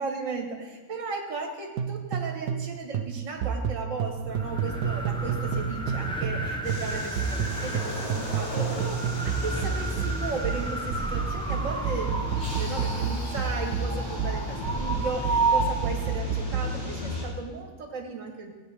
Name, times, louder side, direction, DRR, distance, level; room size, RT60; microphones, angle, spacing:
voice 1, 0.0-18.5, right 4 dB, 60° right, 3 dB, 1.7 m, -36 dB
sound 1, 1.8-2.7 2.9-6.4 6.7-16.8, right 7 dB, 80° right, 1.1 m, -30 dB
sound 2, 4.1-16.2, right 2 dB, 5° left, 0.6 m, -32 dB
sound 3, 6.6-17.2, left 2 dB, 80° left, 3.2 m, -37 dB
16.0 x 8.7 x 3.4 m, 1.3 s
omnidirectional pair, 1.5 m